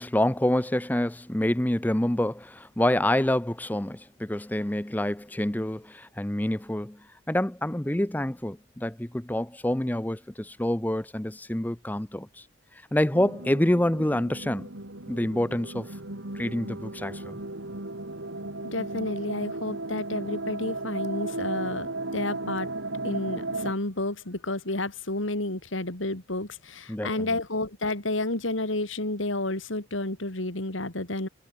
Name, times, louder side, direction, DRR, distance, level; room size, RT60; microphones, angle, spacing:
voice 1, 0.0-7.0 7.3-12.4 12.9-14.7 15.1-15.9 16.3-17.4 26.9-27.4, left 1 dB, 10° left, 0.6 m, -27 dB
sound 1, 13.1-23.7, right 2 dB, 80° right, 3.4 m, -35 dB
voice 2, 18.7-22.7 23.0-31.3, left 2 dB, 85° left, 3.3 m, -31 dB
head